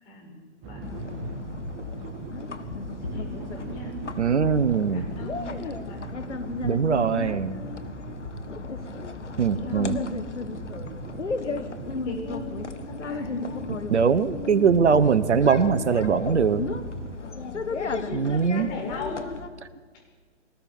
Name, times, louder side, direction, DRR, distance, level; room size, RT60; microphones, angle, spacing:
voice 1, 0.0-0.8 2.9-4.0 4.9-6.2 9.5-10.0 11.4-11.7 12.0-13.6 17.2-17.6 18.3-19.2, left 2 dB, 25° left, 1 dB, 6.1 m, -39 dB
sound 1, 0.6-17.2, right 7 dB, 15° right, 0.9 m, -41 dB
sound 2, 0.8-19.5, left 4 dB, 75° left, 1.8 m, -34 dB
voice 2, 4.2-5.1 6.6-7.6 9.4-9.9 13.9-16.7 18.1-18.7, right 6 dB, 70° right, 14 dB, 1.1 m, -21 dB
22.5 x 19.0 x 6.1 m, 1.5 s
figure-of-eight pair, 135°, 36 cm